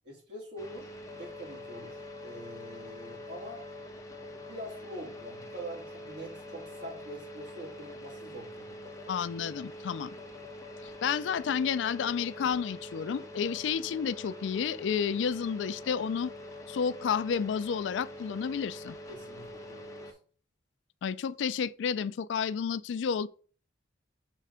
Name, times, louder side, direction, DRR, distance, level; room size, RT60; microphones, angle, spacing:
voice 1, 0.0-0.9 1.2-3.6 4.5-9.1 19.1-20.2, right 1 dB, 65° right, 3.1 m, -45 dB
sound 1, 0.6-20.1, left 1 dB, 20° left, 1.2 m, -45 dB
voice 2, 9.1-10.1 10.8-16.3 16.7-19.0 21.0-23.3, left 7 dB, 70° left, 0.3 m, -31 dB
6.2 x 3.4 x 5.5 m
head